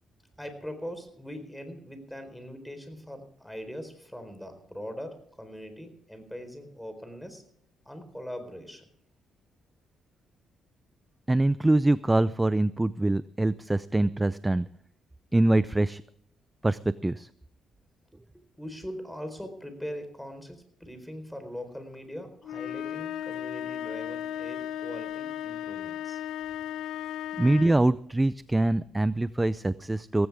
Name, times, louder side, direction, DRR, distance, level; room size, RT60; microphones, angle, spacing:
voice 1, 0.4-7.4 7.9-8.9 18.3-26.2, equal, 5° left, 8 dB, 4.2 m, -41 dB
voice 2, 11.3-14.7 15.3-16.0 16.6-17.3 27.4-30.3, right 2 dB, 15° right, 16 dB, 0.5 m, -24 dB
sound 1, 22.4-27.9, left 10 dB, 80° left, 0.8 m, -35 dB
17.5 x 16.5 x 3.6 m, 0.66 s
cardioid pair, 90°, 0 cm